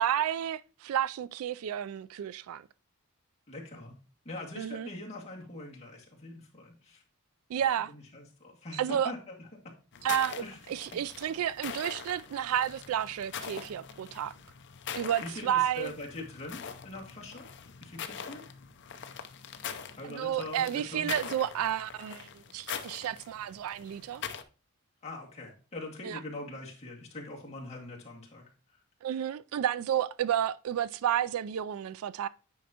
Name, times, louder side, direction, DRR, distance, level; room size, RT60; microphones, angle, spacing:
voice 1, 0.0-2.7 4.6-4.9 7.5-7.9 8.7-9.1 10.0-14.3 15.0-15.9 20.0-24.2 26.0-26.2 29.0-32.3, right 10 dB, 70° right, 0.3 m, -31 dB
voice 2, 3.5-3.9 4.2-7.0 7.9-9.5 10.4-10.6 10.9-11.0 15.2-17.5 17.8-18.4 20.0-21.1 25.0-28.8, left 2 dB, 30° left, 2.0 m, -43 dB
sound 1, 9.9-24.4, left 7 dB, 50° left, 0.6 m, -43 dB
9.3 x 5.2 x 2.8 m
head